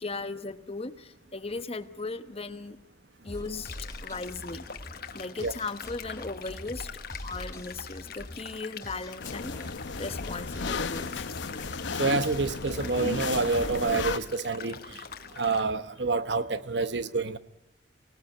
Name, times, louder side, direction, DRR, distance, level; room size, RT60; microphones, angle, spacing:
voice 1, 0.0-2.8 3.2-3.8 4.0-4.7 5.1-11.3, left 3 dB, 35° left, 1.0 m, -37 dB
sound 1, 3.3-14.2, left 1 dB, 15° left, 2.5 m, -44 dB
sound 2, 3.6-15.6, left 6 dB, 55° left, 1.5 m, -44 dB
sound 3, 9.2-14.2, left 4 dB, 80° left, 0.8 m, -34 dB
voice 2, 12.0-14.8 15.4-17.4, right 3 dB, 70° right, 1.0 m, -27 dB
25.0 x 18.0 x 9.1 m
head